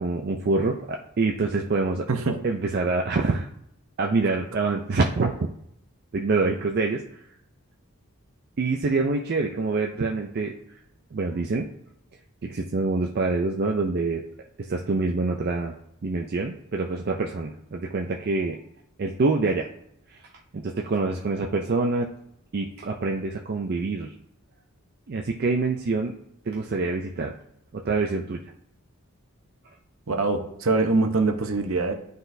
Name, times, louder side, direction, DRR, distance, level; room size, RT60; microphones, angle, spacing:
voice 1, 0.0-2.1 2.4-3.5 4.0-5.5 6.1-7.0 8.6-10.5 11.1-11.7 12.4-14.2 14.6-18.6 19.0-19.7 20.1-20.2 20.5-22.1 22.5-24.1 25.1-26.1 26.5-27.3 27.7-28.4, right 3 dB, 45° right, 2 dB, 0.4 m, -26 dB
voice 2, 2.1-2.4 30.1-31.9, right 3 dB, 65° right, 5 dB, 0.8 m, -23 dB
11.5 x 4.0 x 2.6 m, 0.77 s
head